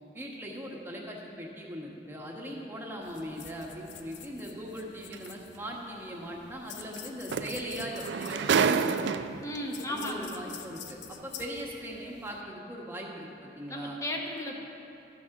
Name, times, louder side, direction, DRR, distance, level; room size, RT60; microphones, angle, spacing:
voice 1, 0.1-9.1 9.9-14.0, equal, 15° right, -2 dB, 1.3 m, -40 dB
sound 1, 3.0-12.4, left 7 dB, 85° left, 0.6 m, -48 dB
sound 2, 5.1-5.3 7.0-7.1 7.3-9.6 10.5-10.6, right 6 dB, 70° right, 0.4 m, -28 dB
voice 2, 9.4-10.3 13.7-14.5, left 1 dB, 20° left, 0 dB, 1.1 m, -35 dB
13.5 x 6.2 x 5.9 m, 2.8 s
head